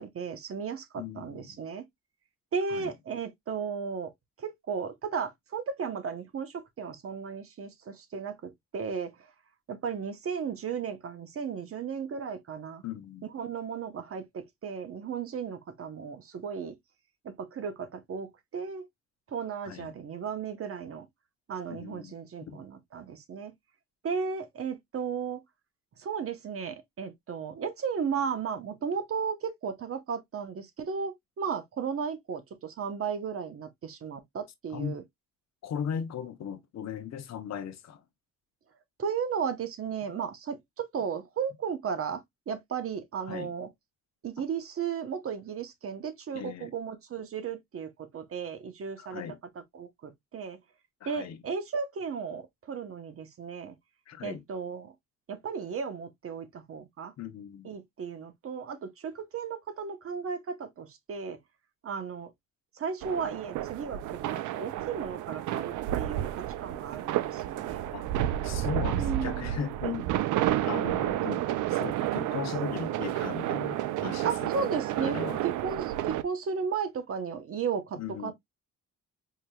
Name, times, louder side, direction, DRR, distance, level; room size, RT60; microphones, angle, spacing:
voice 1, 0.0-1.8 2.5-4.1 4.4-9.1 9.7-12.8 13.3-16.8 17.2-18.9 19.3-21.1 21.5-23.5 24.0-25.4 26.0-35.0 39.0-43.7 44.2-49.2 49.7-50.6 51.0-53.7 54.2-54.9 55.3-57.1 57.6-61.4 61.8-62.3 62.7-67.8 69.0-69.5 74.2-75.2 75.4-78.3, right 6 dB, 50° right, 0.9 m, -35 dB
voice 2, 1.0-1.6 2.7-2.9 12.8-13.3 19.7-20.0 21.7-22.1 22.5-22.6 34.7-35.0 35.6-38.0 43.3-43.5 44.4-44.5 46.3-46.7 49.0-49.4 51.0-51.4 54.1-54.4 57.2-57.7 67.9-68.1 68.4-70.1 70.4-75.4 78.0-78.3, left 8 dB, 60° left, 0.8 m, -38 dB
sound 1, 63.0-76.2, right 13 dB, 80° right, 0.5 m, -31 dB
4.7 x 2.9 x 2.2 m
cardioid pair, 90°, 30 cm